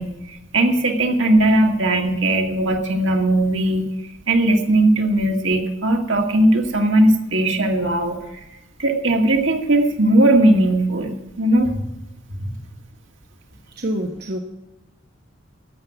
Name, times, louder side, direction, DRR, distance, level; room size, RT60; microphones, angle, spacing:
voice 1, 0.0-3.8 4.3-8.2 8.8-11.9 12.3-12.5, right 1 dB, 80° right, 2 dB, 2.1 m, -18 dB
voice 2, 13.8-14.4, equal, 55° right, 2 dB, 1.2 m, -26 dB
13.0 x 7.5 x 8.0 m, 0.95 s
head